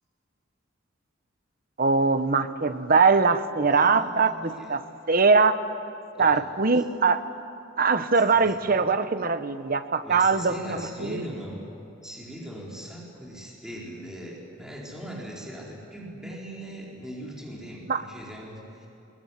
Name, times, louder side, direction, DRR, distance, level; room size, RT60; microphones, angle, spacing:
voice 1, 1.8-5.6 6.2-7.2 7.8-11.2 17.9-18.0, right 4 dB, 45° right, 10 dB, 1.1 m, -22 dB
voice 2, 3.6-4.7 6.1-6.4 7.1-7.2 8.1-8.9 10.0-11.6 12.0-18.9, equal, 5° right, -4 dB, 4.3 m, -40 dB
22.5 x 22.0 x 9.7 m, 2.9 s
head